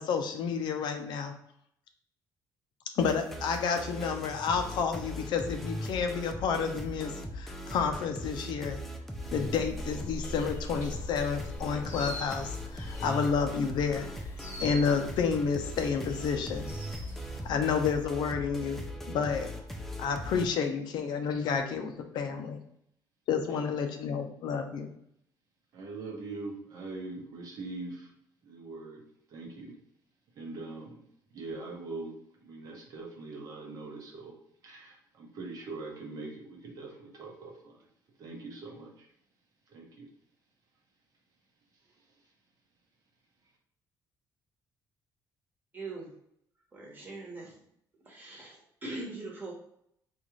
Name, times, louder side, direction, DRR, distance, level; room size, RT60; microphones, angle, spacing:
voice 1, 0.0-1.3 3.0-8.8 9.3-14.1 14.6-16.7 17.4-18.8 19.1-19.5 20.0-22.6 23.3-24.9, left 6 dB, 70° left, 6 dB, 0.5 m, -30 dB
sound 1, 3.0-20.5, equal, 5° left, 0.4 m, -40 dB
sound 2, 9.2-17.5, equal, 30° left, 0.9 m, -43 dB
voice 2, 25.7-28.1 28.4-29.0 29.3-29.7 30.4-31.0 31.3-32.1 32.4-34.4 34.6-37.8 38.2-39.1 39.7-40.1, right 3 dB, 50° right, 0 dB, 0.9 m, -42 dB
voice 3, 45.7-46.1 46.7-47.6 48.0-49.5, right 2 dB, 25° right, -2 dB, 1.1 m, -41 dB
3.9 x 2.4 x 3.1 m, 0.72 s
cardioid pair, 150°, 8 cm